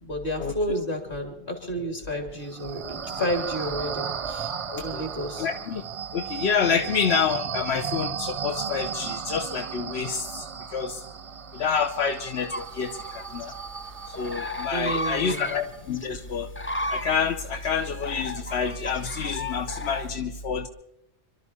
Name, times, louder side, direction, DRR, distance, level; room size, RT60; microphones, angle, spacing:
voice 1, 0.0-4.5 4.8-5.5 6.7-6.8 14.7-15.5, equal, 55° left, 3 dB, 3.2 m, -31 dB
sound 1, 2.4-15.8, right 7 dB, 40° right, 0.5 m, -35 dB
voice 2, 4.7-5.0 5.4-5.8 6.1-10.4 10.7-11.0 11.5-13.5 14.1-16.5 16.9-20.7, left 6 dB, 85° left, 7 dB, 1.0 m, -28 dB
sound 2, 12.5-20.1, left 1 dB, 15° left, 0.5 m, -35 dB
26.5 x 12.5 x 4.3 m, 0.88 s
omnidirectional pair, 1.1 m